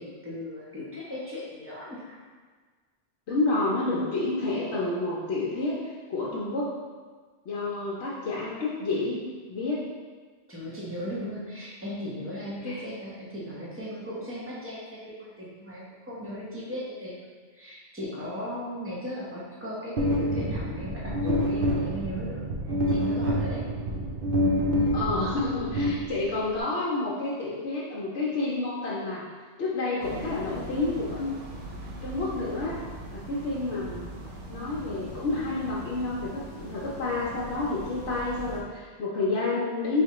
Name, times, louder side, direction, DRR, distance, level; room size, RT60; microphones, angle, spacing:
voice 1, 0.0-2.2 10.5-17.1 17.5-22.4 22.9-23.6, left 1 dB, 15° right, -7 dB, 0.8 m, -37 dB
voice 2, 3.3-6.8 7.5-9.2 9.5-9.9 12.6-12.8 24.9-29.2 29.6-31.4 32.0-32.8 33.1-34.1 34.5-40.0, left 2 dB, 70° left, -6 dB, 0.9 m, -29 dB
sound 1, 20.0-26.6, equal, 60° right, 0.7 m, -27 dB
sound 2, 30.0-38.6, right 2 dB, 90° right, 1.0 m, -41 dB
4.2 x 3.3 x 2.9 m, 1.5 s
omnidirectional pair, 1.2 m